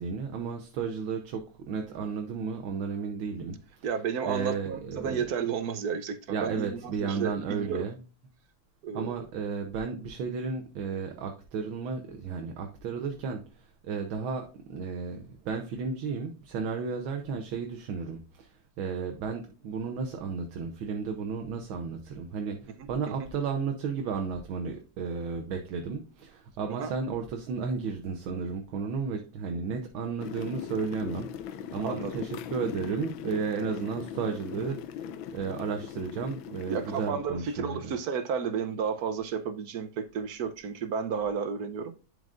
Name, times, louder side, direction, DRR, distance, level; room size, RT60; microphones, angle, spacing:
voice 1, 0.0-3.6 4.2-5.3 6.3-8.0 8.9-37.8, right 5 dB, 80° right, 4 dB, 1.7 m, -33 dB
voice 2, 3.8-7.9 8.8-9.1 22.8-22.9 26.7-26.9 31.8-32.1 36.7-41.9, right 6 dB, 60° right, 11 dB, 1.1 m, -32 dB
sound 1, 30.2-37.1, left 9 dB, 80° left, 1.4 m, -39 dB
11.0 x 5.2 x 2.5 m, 0.35 s
omnidirectional pair, 2.2 m